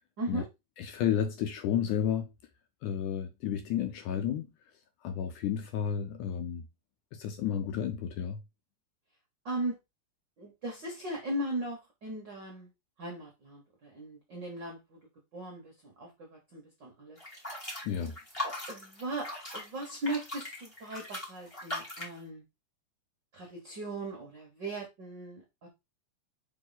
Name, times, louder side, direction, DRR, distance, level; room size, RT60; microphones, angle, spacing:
voice 1, 0.8-2.3 2.8-4.5 5.0-6.7 7.1-8.4 17.9-18.2, left 9 dB, 75° left, 2.0 m, -31 dB
voice 2, 9.4-9.8 10.4-12.7 13.0-15.0 15.3-17.2 17.6-17.7 18.4-22.4 23.3-25.7, right 1 dB, 60° right, 1.1 m, -38 dB
sound 1, 17.2-22.2, left 1 dB, 15° left, 1.3 m, -40 dB
5.4 x 4.7 x 4.0 m
omnidirectional pair, 4.2 m